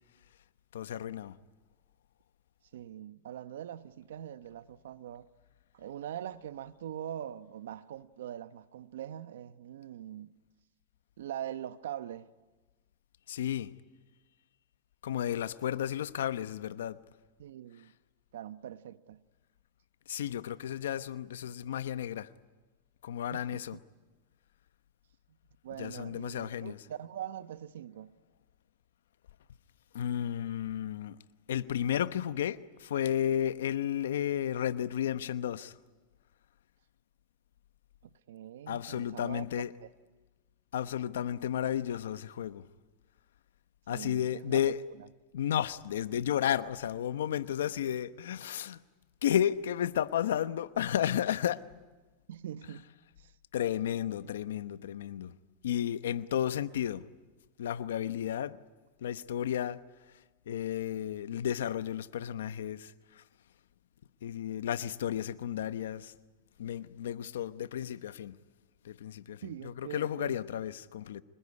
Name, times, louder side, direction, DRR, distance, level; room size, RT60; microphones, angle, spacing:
voice 1, 0.7-1.4 13.3-13.7 15.0-17.0 20.1-22.3 23.0-23.8 25.7-26.8 29.9-31.2 31.5-35.7 38.7-39.7 40.7-42.6 43.9-44.8 45.3-48.8 49.2-51.6 52.7-52.8 53.5-55.4 55.6-57.1 57.6-58.6 59.0-59.8 60.5-63.2 64.2-66.1 66.6-68.4 68.8-71.2, left 10 dB, 90° left, 1.0 m, -33 dB
voice 2, 2.7-5.3 5.7-10.3 11.2-12.3 17.4-17.9 18.3-19.2 23.3-23.8 25.6-28.1 38.3-39.5 39.8-39.9 43.9-44.6 45.0-45.1 52.3-52.9 53.2-53.3 69.4-70.4, right 11 dB, 85° right, 1.0 m, -42 dB
26.0 x 20.5 x 9.7 m
supercardioid pair, 145°, 0 cm